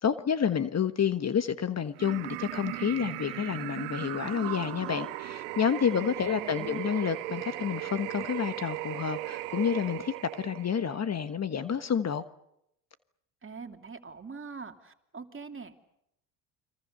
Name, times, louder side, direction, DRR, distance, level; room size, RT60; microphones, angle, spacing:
voice 1, 0.0-12.2, left 7 dB, 35° left, 12 dB, 1.4 m, -29 dB
sound 1, 2.0-11.0, right 18 dB, 75° right, 1.5 m, -37 dB
voice 2, 5.9-6.9 13.4-15.8, right 5 dB, 25° right, 6 dB, 2.8 m, -44 dB
30.0 x 23.5 x 6.7 m, 0.80 s
hypercardioid pair, 70°, 46 cm